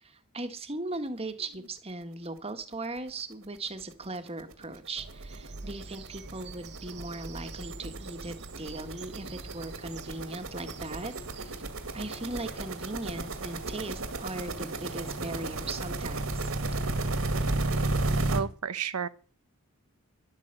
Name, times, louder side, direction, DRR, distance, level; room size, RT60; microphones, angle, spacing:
voice 1, 0.0-11.6 11.9-16.5, right 2 dB, 25° right, 1.6 m, -38 dB
sound 1, 3.0-3.1 3.4-3.6 3.8-18.4, right 2 dB, 65° right, 2.2 m, -33 dB
Bird vocalization bird call bird song, 5.0-15.0, right 3 dB, 50° right, 1.1 m, -46 dB
voice 2, 18.3-19.1, right 6 dB, 90° right, 0.9 m, -31 dB
12.0 x 8.9 x 8.1 m
head